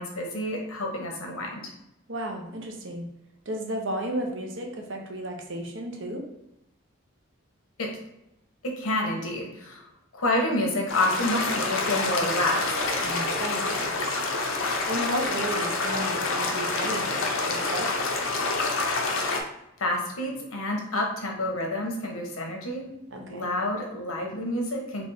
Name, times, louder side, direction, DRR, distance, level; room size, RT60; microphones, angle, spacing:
voice 1, 0.0-1.6 7.8-8.0 8.6-9.9 10.1-12.7 19.8-22.9 23.3-25.1, left 1 dB, 90° left, 1 dB, 1.1 m, -28 dB
voice 2, 2.1-3.0 3.5-6.2 13.0-13.9 14.9-18.1 23.1-23.5, right 1 dB, 60° right, 2 dB, 0.8 m, -33 dB
sound 1, 10.9-19.4, left 3 dB, 70° left, 0.6 m, -27 dB
3.4 x 3.0 x 4.2 m, 0.86 s
head